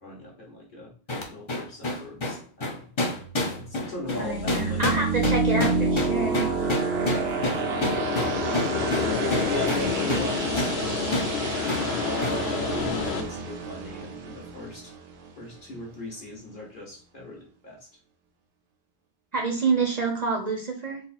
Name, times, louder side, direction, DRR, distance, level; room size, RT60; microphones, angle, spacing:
voice 1, 0.0-0.9 1.3-3.2 3.6-5.0 5.5-6.7 7.0-8.1 9.5-11.2 11.7-14.9 15.4-17.9, left 1 dB, 50° left, -3 dB, 1.5 m, -39 dB
sound 1, 1.1-10.3 10.6-10.8 11.1-11.3 11.7-11.9 12.2-12.4, left 2 dB, 30° left, 0.6 m, -29 dB
sound 2, 3.1-15.8, right 4 dB, 80° right, 0.9 m, -30 dB
sound 3, 4.1-13.2, left 5 dB, 80° left, 0.8 m, -30 dB
voice 2, 4.2-6.5 19.3-21.0, right 3 dB, 45° right, 1 dB, 0.7 m, -27 dB
3.9 x 2.0 x 4.0 m, 0.40 s
omnidirectional pair, 1.1 m